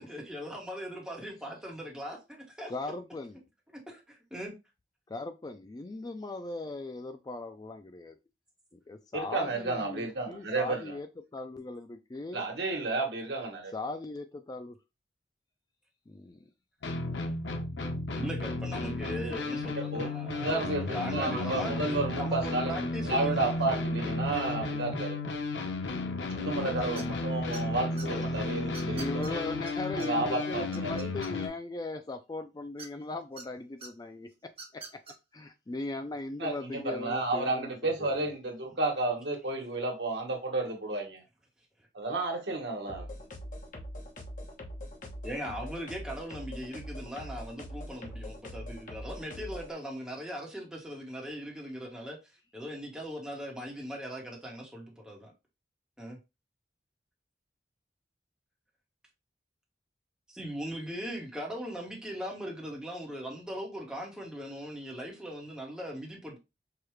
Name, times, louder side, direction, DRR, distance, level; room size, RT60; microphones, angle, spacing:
voice 1, 0.0-2.7 3.7-4.5 18.2-20.5 20.8-21.7 22.1-23.4 26.4-27.0 45.2-52.2 52.5-55.3 56.0-56.2 60.3-66.4, equal, 5° right, 1.2 m, -39 dB
voice 2, 2.7-3.4 5.1-8.2 8.7-11.1 11.3-12.4 13.7-14.8 16.1-16.5 27.9-28.3 28.8-34.3 34.7-34.8 35.3-38.2, left 2 dB, 25° left, 0.3 m, -39 dB
voice 3, 9.1-11.0 12.3-13.7 19.9-20.1 20.4-25.2 26.4-29.5 30.0-31.1 36.4-41.2 41.9-43.1, right 2 dB, 75° right, 1.3 m, -32 dB
sound 1, 16.8-31.5, left 2 dB, 85° left, 0.7 m, -33 dB
sound 2, 27.0-27.2 27.5-28.1 28.7-29.3 29.7-29.8 30.0-30.1 30.4-31.6 32.8-33.4 33.8-33.9 34.5-35.1, right 4 dB, 35° right, 1.0 m, -44 dB
sound 3, 42.9-49.7, equal, 45° left, 1.0 m, -42 dB
4.8 x 2.4 x 3.1 m
head